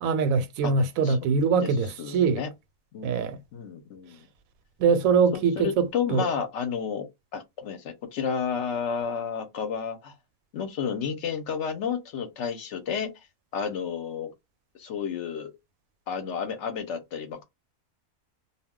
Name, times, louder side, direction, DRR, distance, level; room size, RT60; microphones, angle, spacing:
voice 1, 0.0-2.4 3.0-3.4 4.8-6.2, right 5 dB, 90° right, 1.0 m, -23 dB
voice 2, 2.0-2.5 2.9-3.1 3.5-4.2 5.3-10.1 10.5-13.1 13.5-14.3 14.8-15.5 16.1-17.4, left 7 dB, 65° left, 0.9 m, -31 dB
2.3 x 2.1 x 3.5 m
omnidirectional pair, 1.4 m